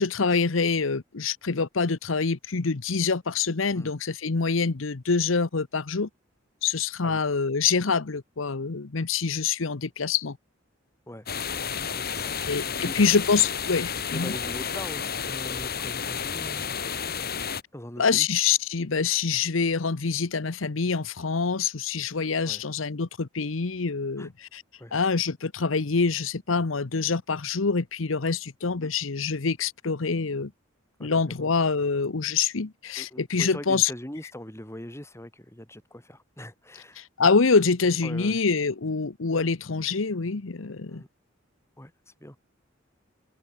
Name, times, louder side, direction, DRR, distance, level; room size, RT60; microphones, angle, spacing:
voice 1, 0.0-6.1 6.6-10.4 12.5-14.3 18.0-24.6 24.9-30.5 31.0-33.9 37.0-41.0, left 5 dB, 90° left, 0.9 m, -25 dB
sound 1, 11.3-17.6, left 7 dB, 50° left, 3.1 m, -31 dB
voice 2, 11.9-12.5 12.7-13.0 14.1-16.7 17.7-18.3 22.4-22.6 24.2-24.3 24.8-25.0 28.8-28.9 31.0-31.5 33.0-37.0 38.0-38.4 40.9-41.1 41.8-41.9 42.2-42.4, left 1 dB, 15° left, 5.0 m, -41 dB
head